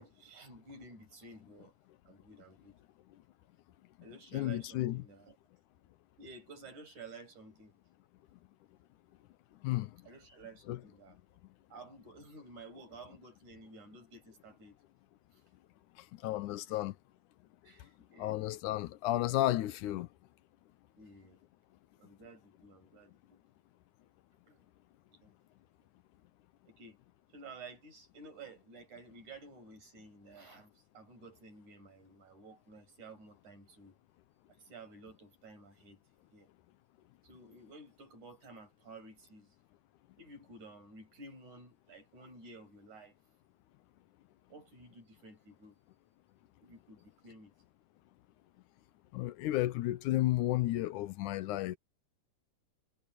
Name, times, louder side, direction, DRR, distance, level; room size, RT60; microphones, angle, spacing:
voice 1, 0.0-1.7 2.1-2.8 4.0-5.4 6.2-7.7 10.0-11.2 11.7-14.8 16.7-16.8 17.6-18.4 21.0-21.4 22.0-23.4 24.5-24.7 25.1-25.4 26.7-27.0 27.3-34.0 34.6-36.0 36.3-36.5 37.2-39.5 40.2-43.1 44.5-45.8 46.6-47.5, right 3 dB, 60° right, 9.2 m, -53 dB
voice 2, 4.3-5.0 9.6-9.9 10.7-10.8 16.2-16.9 18.2-20.1 49.1-51.8, left 15 dB, 75° left, 2.1 m, -32 dB
omnidirectional pair, 3.9 m